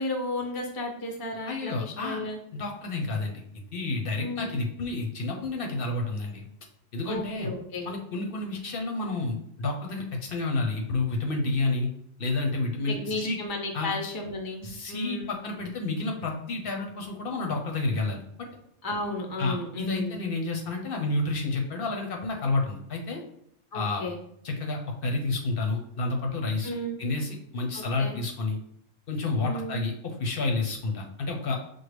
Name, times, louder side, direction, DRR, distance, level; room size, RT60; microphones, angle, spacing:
voice 1, 0.0-2.4 4.2-4.6 7.1-7.9 12.9-15.4 18.8-20.2 23.7-24.2 26.6-27.0 27.7-28.2 29.4-29.8, left 1 dB, 30° left, 3 dB, 0.4 m, -33 dB
voice 2, 1.4-2.2 2.5-3.4 3.7-6.4 6.9-7.5 7.8-11.9 12.2-13.4 13.7-13.9 14.6-18.2 19.4-23.2 23.7-24.0 24.4-28.6 29.1-31.6, left 3 dB, 55° left, 2 dB, 0.7 m, -30 dB
6.1 x 2.1 x 3.2 m, 0.71 s
omnidirectional pair, 1.3 m